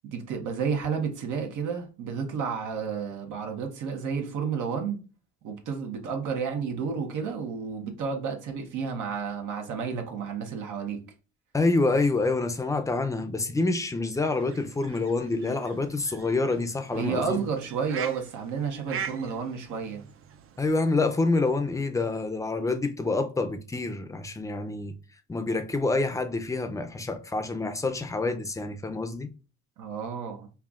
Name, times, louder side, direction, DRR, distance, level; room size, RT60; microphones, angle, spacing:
voice 1, 0.0-5.0 5.4-11.0 16.9-20.0 29.8-30.5, right 6 dB, 80° right, 0.9 m, -31 dB
voice 2, 11.5-17.5 20.6-24.9 25.3-29.3, left 3 dB, 10° left, 0.5 m, -27 dB
sound 1, 14.1-20.8, right 8 dB, 45° right, 0.5 m, -42 dB
5.6 x 2.3 x 2.4 m
cardioid pair, 90°, 30 cm